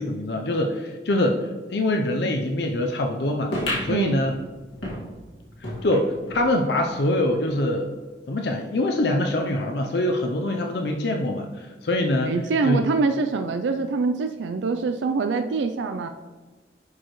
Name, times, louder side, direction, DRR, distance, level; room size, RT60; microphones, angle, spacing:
voice 1, 0.0-3.5 3.8-4.4 5.6-7.9 8.3-12.3 12.6-12.8, left 1 dB, 65° left, 3 dB, 0.6 m, -24 dB
sound 1, 3.5-6.5 6.9-7.0 7.2-7.3 8.1-8.2, left 1 dB, 90° left, 2.0 m, -32 dB
voice 2, 3.9-4.2 12.2-16.1, right 4 dB, 85° right, 7 dB, 0.4 m, -24 dB
10.5 x 4.7 x 3.1 m, 1.3 s
head